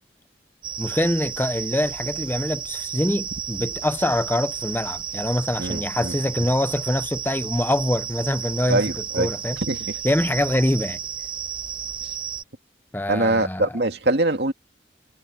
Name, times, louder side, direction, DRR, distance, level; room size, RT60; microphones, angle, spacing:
sound 1, 0.6-12.4, right 8 dB, 30° right, 7.6 m, -32 dB
voice 1, 0.8-8.8 9.2-9.6 10.0-11.0 12.9-13.7, left 1 dB, 10° left, 0.6 m, -24 dB
voice 2, 5.6-6.1 8.7-10.0 13.1-14.5, right 2 dB, 65° right, 2.4 m, -23 dB
head